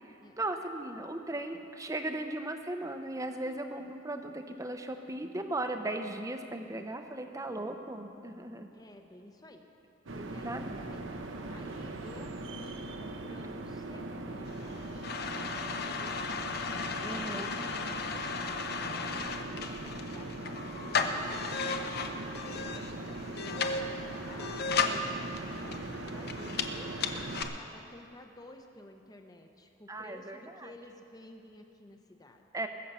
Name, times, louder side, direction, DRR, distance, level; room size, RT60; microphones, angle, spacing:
voice 1, 0.4-8.7 10.1-10.8 17.0-17.5 24.8-25.3 29.9-30.7 32.5-32.7, right 2 dB, 15° right, 6 dB, 0.7 m, -37 dB
voice 2, 6.5-6.9 8.7-9.6 10.1-15.1 15.7-24.6 25.5-27.3 27.6-32.4, left 1 dB, 20° left, 4 dB, 0.8 m, -52 dB
sound 1, 10.1-27.5, right 2 dB, 70° right, 0.9 m, -40 dB
sound 2, 14.5-27.4, left 5 dB, 50° left, 0.7 m, -35 dB
20.5 x 7.3 x 5.6 m, 2.7 s
head